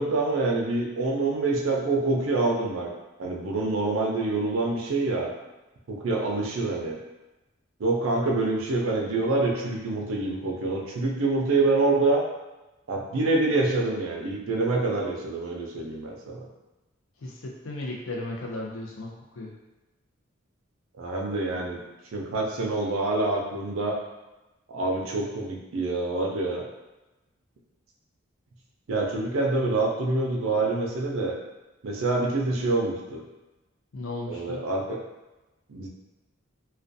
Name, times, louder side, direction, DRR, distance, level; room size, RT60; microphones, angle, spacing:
voice 1, 0.0-2.9 3.2-5.3 5.9-6.9 7.8-12.2 12.9-16.4 21.0-21.8 22.1-24.0 24.7-26.6 28.9-31.3 31.8-33.2 34.3-35.0 35.7-35.9, right 2 dB, 75° right, -1 dB, 0.5 m, -26 dB
voice 2, 17.2-19.5 33.9-34.6, left 2 dB, 80° left, -1 dB, 0.5 m, -35 dB
2.3 x 2.2 x 2.6 m, 1.1 s
head